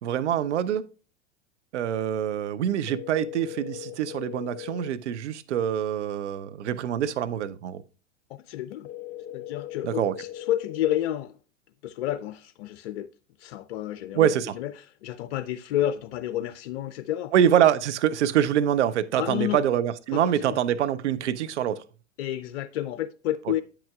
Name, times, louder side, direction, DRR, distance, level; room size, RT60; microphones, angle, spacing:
voice 1, 0.0-0.9 1.7-7.8 9.8-10.1 14.1-14.5 17.3-21.8, right 10 dB, 75° right, 0.7 m, -25 dB
sound 1, 2.9-4.9 8.8-10.9, left 13 dB, 35° left, 1.5 m, -39 dB
voice 2, 8.3-8.9 9.3-11.4 11.8-13.1 13.4-17.3 19.2-19.7 20.1-20.6 22.2-23.6, left 12 dB, 60° left, 0.5 m, -30 dB
8.6 x 7.9 x 2.3 m
hypercardioid pair, 90°, 35 cm